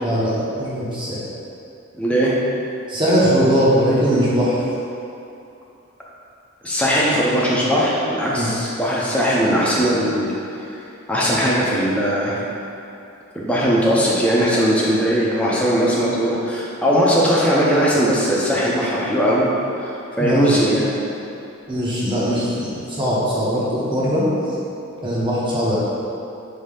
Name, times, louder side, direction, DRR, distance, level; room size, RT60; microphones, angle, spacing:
voice 1, 0.0-1.2 2.9-4.6 8.3-8.5 20.2-20.6 21.7-24.2 25.0-25.8, equal, 25° right, -8 dB, 1.0 m, -20 dB
voice 2, 1.9-2.3 6.6-10.3 11.1-12.4 13.3-19.4 19.8-19.9 20.2-20.9, equal, 5° left, -6 dB, 0.6 m, -19 dB
5.5 x 2.8 x 3.3 m, 2.7 s
head